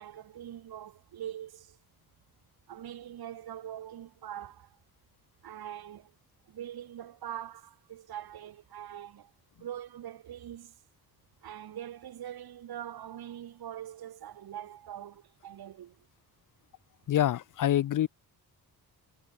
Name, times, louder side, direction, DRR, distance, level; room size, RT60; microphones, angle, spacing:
voice 1, 0.0-1.8 2.7-4.8 5.4-6.1 6.5-9.3 9.6-10.7 11.4-16.0, right 11 dB, 70° right, 2.6 m, -43 dB
voice 2, 17.1-18.1, left 12 dB, 55° left, 0.6 m, -26 dB
cardioid pair, 85°, 38 cm